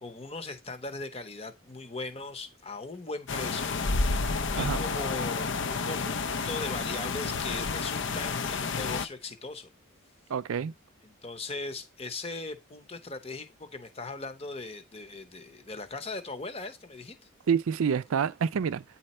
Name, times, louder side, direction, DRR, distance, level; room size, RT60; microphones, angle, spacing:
voice 1, 0.0-3.8 4.2-9.7 11.0-17.1, left 3 dB, 30° left, 0.9 m, -39 dB
sound 1, 3.3-9.1, left 4 dB, 60° left, 0.6 m, -30 dB
voice 2, 10.3-10.7 17.5-18.8, right 7 dB, 75° right, 0.4 m, -27 dB
9.1 x 4.3 x 4.2 m
head